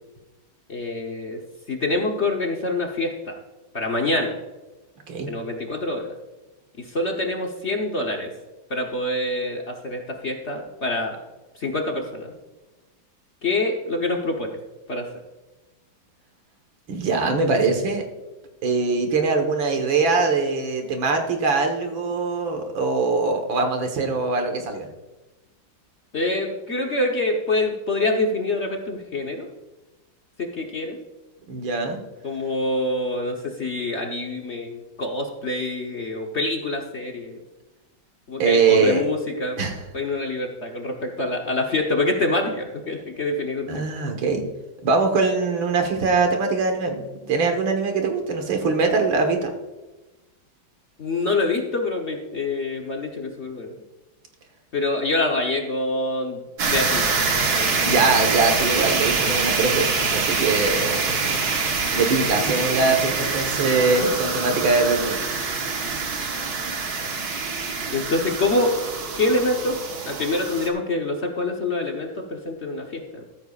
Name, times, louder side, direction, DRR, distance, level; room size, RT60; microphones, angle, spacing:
voice 1, 0.7-1.4 1.7-3.4 3.7-4.4 5.3-6.2 6.8-8.3 8.7-11.2 11.5-12.3 13.4-14.6 14.9-15.1 26.1-29.5 30.4-31.0 32.2-37.4 38.3-39.6 39.9-43.8 51.0-53.8 54.7-57.1 57.5-58.0 59.7-59.8 61.2-61.4 67.9-68.7 69.2-69.8 70.0-73.2, left 2 dB, 40° left, 1 dB, 1.2 m, -26 dB
voice 2, 16.9-18.0 18.6-24.9 31.5-32.0 38.4-39.0 39.6-39.8 43.7-44.4 44.8-49.5 57.8-61.6 61.9-65.2, right 4 dB, 75° right, 4 dB, 2.2 m, -22 dB
sound 1, 56.6-70.7, right 4 dB, 55° right, 1.8 m, -25 dB
13.5 x 13.5 x 2.4 m, 1.1 s
omnidirectional pair, 2.2 m